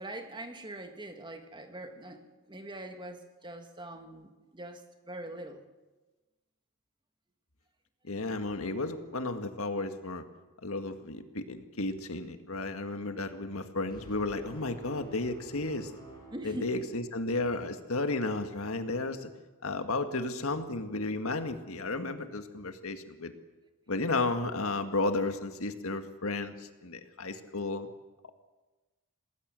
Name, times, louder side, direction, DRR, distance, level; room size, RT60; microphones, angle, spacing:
voice 1, 0.0-5.6 16.3-16.7, right 1 dB, 20° right, 5 dB, 1.9 m, -43 dB
voice 2, 8.0-10.2 10.6-15.9 16.4-19.3 19.6-23.3 23.9-27.9, left 2 dB, 65° left, 7 dB, 1.9 m, -33 dB
sound 1, 13.9-17.4, right 1 dB, 20° left, 7.0 m, -49 dB
27.5 x 19.0 x 7.7 m, 1.2 s
head